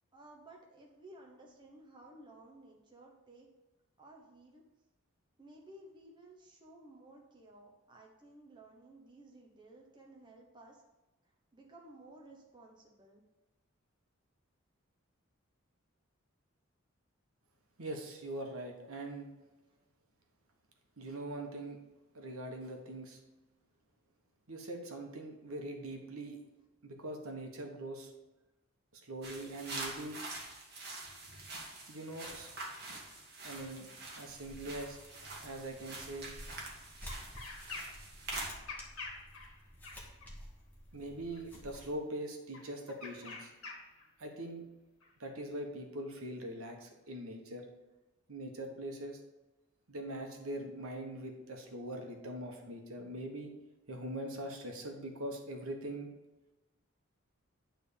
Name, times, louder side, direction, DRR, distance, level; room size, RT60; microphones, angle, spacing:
voice 1, 0.1-3.5 4.0-4.6 5.4-10.8 11.5-13.2 19.7-19.8, right 1 dB, 20° right, -1 dB, 0.9 m, -56 dB
voice 2, 17.8-19.3 21.0-21.8 22.1-23.2 24.5-26.4 26.8-28.1 28.9-30.2 31.9-32.5 32.9-33.0 33.4-33.9 34.2-35.0 35.4-36.3 40.9-43.5 44.2-44.6 45.2-47.6 48.3-49.2 49.9-53.5 53.9-56.1, right 1 dB, 75° right, 2 dB, 1.2 m, -42 dB
sound 1, 29.2-38.5, right 2 dB, 45° right, 1.6 m, -45 dB
sound 2, 34.3-41.9, equal, 10° left, 1.1 m, -52 dB
sound 3, 37.1-38.0 38.3-40.3 41.3-41.8 42.5-44.1 45.0-45.1, left 3 dB, 75° left, 1.5 m, -46 dB
9.2 x 3.5 x 6.7 m, 1.1 s
head